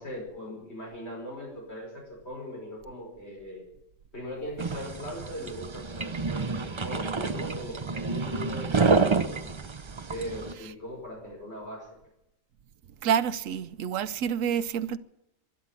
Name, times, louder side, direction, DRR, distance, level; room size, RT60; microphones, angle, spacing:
voice 1, 0.0-3.6 4.1-9.5 10.1-12.0, equal, 50° left, 5.6 m, -39 dB
sound 1, 4.6-10.5, right 4 dB, 30° right, 0.5 m, -28 dB
voice 2, 13.0-15.0, right 9 dB, 75° right, 1.1 m, -28 dB
12.5 x 11.0 x 9.7 m
omnidirectional pair, 1.4 m